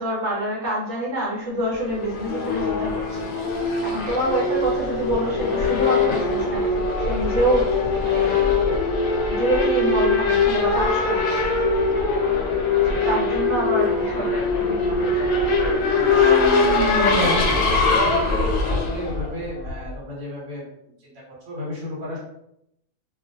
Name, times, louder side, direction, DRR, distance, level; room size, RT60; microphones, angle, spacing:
voice 1, 0.0-3.3 3.8-8.5 9.3-11.4 12.8-15.6, right 1 dB, 60° right, -5 dB, 1.1 m, -26 dB
Race car auto racing / Accelerating revving vroom, 1.8-19.9, left 3 dB, 75° left, 0.9 m, -22 dB
voice 2, 17.2-20.7 21.0-22.2, equal, 80° right, -4 dB, 1.3 m, -33 dB
2.4 x 2.3 x 2.6 m, 0.79 s
omnidirectional pair, 1.5 m